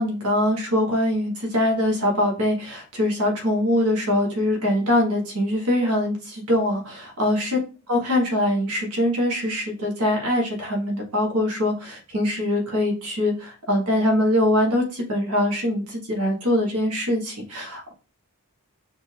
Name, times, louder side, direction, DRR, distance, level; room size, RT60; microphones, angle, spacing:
voice 1, 0.0-7.6 7.9-17.9, left 1 dB, 75° right, 0 dB, 1.4 m, -23 dB
5.2 x 2.5 x 3.3 m, 0.34 s
head